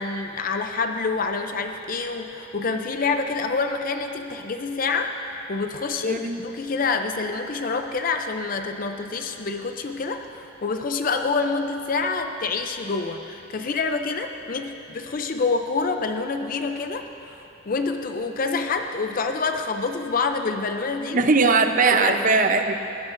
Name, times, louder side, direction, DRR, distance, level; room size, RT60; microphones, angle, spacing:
voice 1, 0.0-5.1 5.5-21.2 22.0-22.2, left 4 dB, 40° left, 6 dB, 0.5 m, -27 dB
voice 2, 6.0-6.4 21.1-22.7, right 4 dB, 40° right, 7 dB, 0.6 m, -19 dB
20.5 x 16.0 x 2.6 m, 2.9 s
head